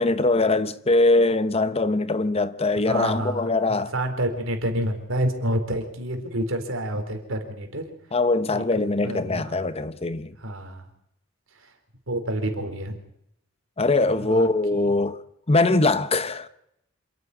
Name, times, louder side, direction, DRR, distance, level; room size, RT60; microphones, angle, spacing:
voice 1, 0.0-3.9 8.1-10.3 13.8-15.2 15.5-16.5, left 2 dB, 30° left, 0.9 m, -22 dB
voice 2, 2.9-7.8 8.5-8.6 9.0-9.6 10.4-10.8 12.1-12.9 14.3-14.9, right 1 dB, 75° right, 4.1 m, -28 dB
27.0 x 9.7 x 10.0 m
head